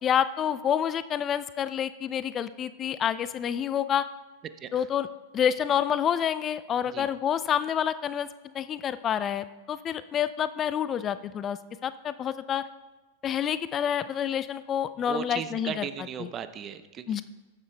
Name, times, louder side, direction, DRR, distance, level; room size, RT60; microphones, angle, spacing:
voice 1, 0.0-4.1 4.7-5.1 5.3-8.3 8.5-12.7 13.2-15.9 16.2-16.3 17.1-17.2, left 9 dB, 30° left, 14 dB, 0.3 m, -28 dB
voice 2, 15.1-17.2, right 8 dB, 30° right, 12 dB, 0.6 m, -37 dB
14.0 x 9.6 x 2.2 m, 1.2 s
hypercardioid pair, 100°, 0 cm